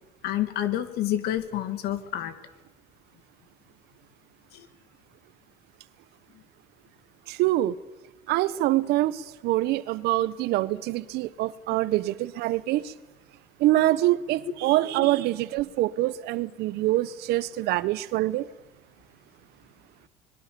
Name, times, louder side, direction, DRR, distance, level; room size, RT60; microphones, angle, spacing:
voice 1, 0.2-2.3 4.5-4.7, left 12 dB, 65° left, 11 dB, 2.6 m, -28 dB
voice 2, 7.3-7.7 8.3-12.9 13.6-18.5, right 16 dB, 70° right, 17 dB, 1.1 m, -25 dB
25.5 x 21.5 x 7.0 m, 1.1 s
supercardioid pair, 110°, 18 cm